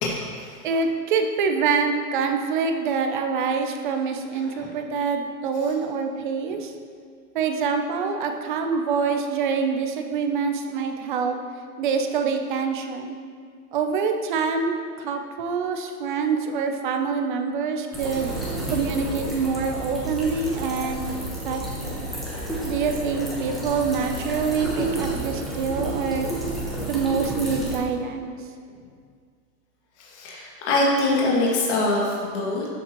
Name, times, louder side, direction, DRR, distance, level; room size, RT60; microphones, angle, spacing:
voice 1, 0.0-0.6 4.4-4.7 26.8-26.9 30.0-32.7, left 2 dB, 45° left, -5 dB, 2.3 m, -24 dB
voice 2, 0.6-6.7 7.3-11.4 11.8-13.2 13.7-18.3 18.7-21.1 21.4-22.1 22.6-26.3 26.7-28.3, right 5 dB, 30° right, 5 dB, 0.6 m, -25 dB
sound 1, 17.9-27.8, right 1 dB, ahead, 0.9 m, -31 dB
13.5 x 7.2 x 3.0 m, 2.1 s
hypercardioid pair, 160°, 48 cm